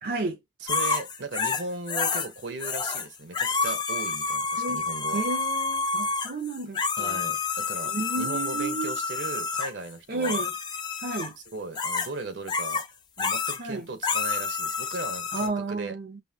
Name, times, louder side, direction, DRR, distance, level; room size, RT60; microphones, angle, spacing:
voice 1, 0.0-0.4 4.6-4.8 5.1-7.2 7.9-9.0 10.1-10.5 11.0-11.3 13.6-13.9 15.3-16.2, right 3 dB, 50° right, 0.6 m, -32 dB
voice 2, 0.6-5.2 7.0-10.4 11.5-12.8 13.2-15.9, right 3 dB, 70° right, 0.9 m, -37 dB
sound 1, 0.7-2.3 2.6-3.1 3.3-9.7 10.2-11.3 11.8-12.1 12.5-12.9 13.2-13.6 14.0-15.5, left 4 dB, 25° left, 0.4 m, -29 dB
5.5 x 2.1 x 2.7 m
head